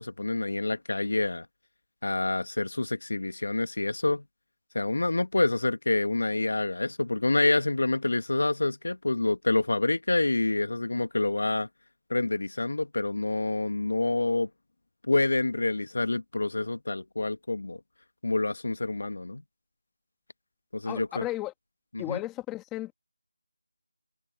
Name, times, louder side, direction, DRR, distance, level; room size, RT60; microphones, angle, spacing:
voice 1, 0.0-1.5 2.0-4.2 4.8-11.7 12.1-14.5 15.1-17.8 18.2-19.4 20.7-21.2 21.9-22.2, left 2 dB, 60° left, 1.7 m, -27 dB
voice 2, 20.8-21.5 22.0-22.9, left 16 dB, 5° left, 1.5 m, -34 dB
figure-of-eight pair, 175°, 0 cm